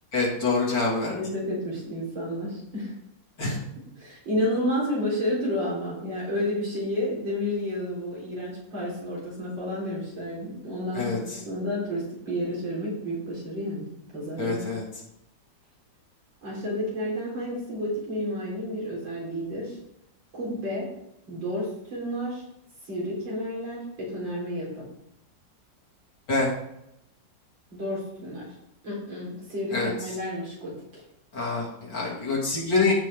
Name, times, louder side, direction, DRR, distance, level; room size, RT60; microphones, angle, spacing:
voice 1, 0.1-1.2 3.4-3.6 10.9-11.4 14.4-14.8 26.3-26.5 29.7-29.9 31.3-32.9, left 3 dB, 65° left, -4 dB, 3.5 m, -26 dB
voice 2, 1.1-2.9 4.0-14.7 16.4-19.8 20.3-20.9 21.3-22.4 22.9-24.9 27.7-28.5 28.8-30.7, equal, 75° right, -6 dB, 4.8 m, -31 dB
15.0 x 5.2 x 3.7 m, 0.79 s
omnidirectional pair, 2.0 m